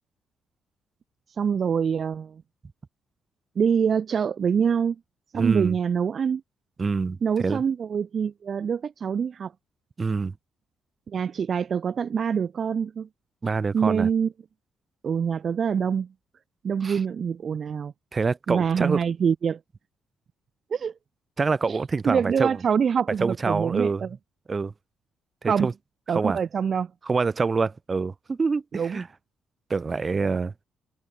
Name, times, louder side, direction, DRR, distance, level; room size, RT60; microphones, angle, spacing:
voice 1, 1.4-2.4 3.6-5.0 5.3-6.4 7.2-9.5 11.1-13.1 13.7-14.3 15.0-16.1 16.6-17.9 18.5-19.6 20.7-20.9 21.7-21.8 22.0-24.1 25.5-25.7 26.1-26.9 28.8-29.0, right 7 dB, 50° right, 2.5 m, -25 dB
voice 2, 5.3-5.8 6.8-7.6 10.0-10.3 13.4-14.1 16.8-17.0 18.1-19.0 21.4-22.6 23.2-24.0 24.5-24.7 25.4-25.7 26.1-26.4 27.1-29.1 29.7-30.5, right 4 dB, 30° right, 7.1 m, -26 dB
cardioid pair, 90°, 0 cm